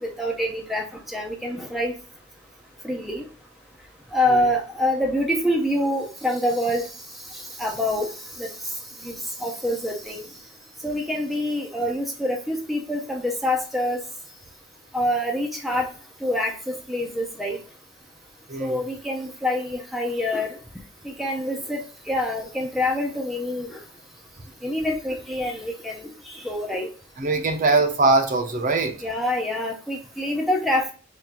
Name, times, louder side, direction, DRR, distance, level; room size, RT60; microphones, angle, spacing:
voice 1, 0.0-0.8 1.1-1.9 2.8-3.2 4.1-6.8 7.6-8.1 8.4-8.5 9.0-10.2 10.8-14.0 14.9-15.9 16.2-17.6 18.6-20.6 21.0-23.8 24.6-26.9 29.0-30.9, left 1 dB, ahead, 0 dB, 0.6 m, -26 dB
voice 2, 18.5-18.8 27.2-28.9, right 3 dB, 45° right, 5 dB, 0.8 m, -21 dB
4.3 x 2.6 x 3.6 m, 0.37 s
head